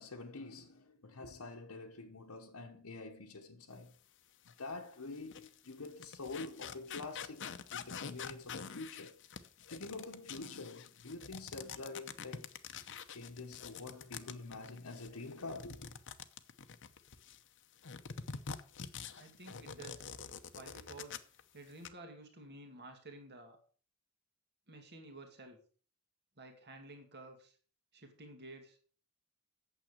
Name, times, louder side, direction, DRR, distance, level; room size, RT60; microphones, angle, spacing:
voice 1, 0.0-3.9 4.4-9.2 9.7-12.5 13.1-15.9, left 3 dB, 85° left, 1.2 m, -47 dB
sound 1, 4.5-4.6 5.2-17.4 17.8-21.4 21.7-21.9, left 6 dB, 60° left, 0.8 m, -46 dB
voice 2, 19.2-20.1 20.5-21.2 21.5-23.6 24.7-25.6 26.4-27.6 27.9-28.8, right 2 dB, 50° right, 2.2 m, -52 dB
9.0 x 7.5 x 6.4 m
head